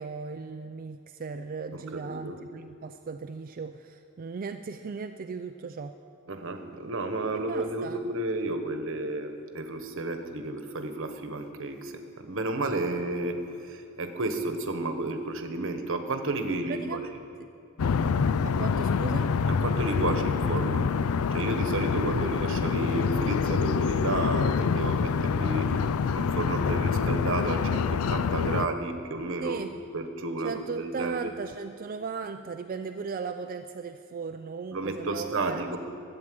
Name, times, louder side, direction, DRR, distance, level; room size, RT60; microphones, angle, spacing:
voice 1, 0.0-5.9 7.3-8.0 16.7-17.1 17.4-17.5 18.4-19.3 29.4-29.7 30.4-35.7, right 5 dB, 40° right, 8 dB, 0.4 m, -37 dB
voice 2, 1.7-2.4 6.3-17.0 19.5-20.9 21.3-25.7 26.1-29.6 29.9-31.3 34.7-35.8, right 2 dB, 60° right, 6 dB, 1.2 m, -32 dB
sound 1, 17.8-28.7, left 5 dB, 80° left, 0.4 m, -26 dB
13.0 x 8.8 x 7.8 m, 2.8 s
head